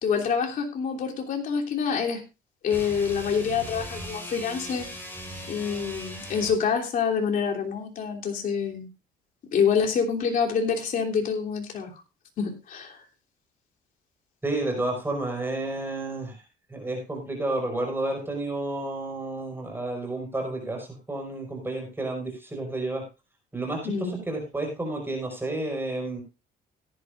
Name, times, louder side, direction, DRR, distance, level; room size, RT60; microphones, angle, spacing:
voice 1, 0.0-2.2 2.6-4.9 5.5-8.9 9.5-11.9 12.4-13.0 23.8-24.2, left 6 dB, 55° left, 0 dB, 3.3 m, -26 dB
sound 1, 2.7-6.7, equal, 10° left, 5.1 m, -39 dB
voice 2, 14.4-16.4 16.7-23.0 23.5-26.2, right 2 dB, 15° right, 1 dB, 5.2 m, -31 dB
17.0 x 11.5 x 2.6 m, 0.27 s
cardioid pair, 110°, 17 cm